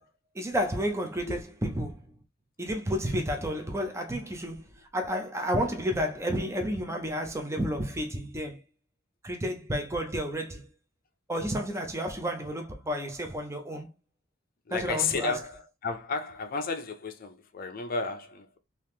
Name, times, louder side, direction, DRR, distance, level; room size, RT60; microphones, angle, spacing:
voice 1, 0.3-2.0 2.6-4.7 4.9-8.6 9.2-10.7 11.3-13.9 14.7-15.3, equal, 15° right, 0.5 m, -31 dB
voice 2, 14.7-18.6, left 4 dB, 50° left, 0.5 m, -32 dB
2.9 x 2.8 x 3.4 m
head